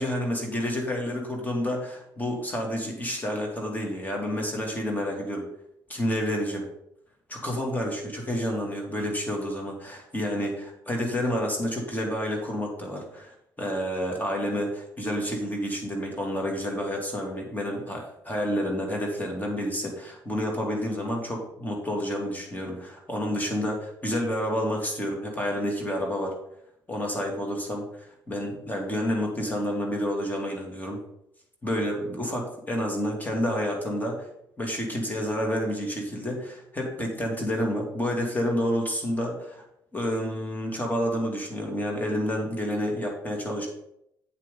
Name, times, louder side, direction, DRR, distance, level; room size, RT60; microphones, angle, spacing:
voice 1, 0.0-5.4 5.9-6.6 7.3-26.3 26.9-31.0 31.6-34.2 34.6-39.6 39.9-43.7, equal, 20° left, 0 dB, 2.4 m, -29 dB
8.4 x 7.5 x 3.9 m, 0.77 s
cardioid pair, 90°, 9 cm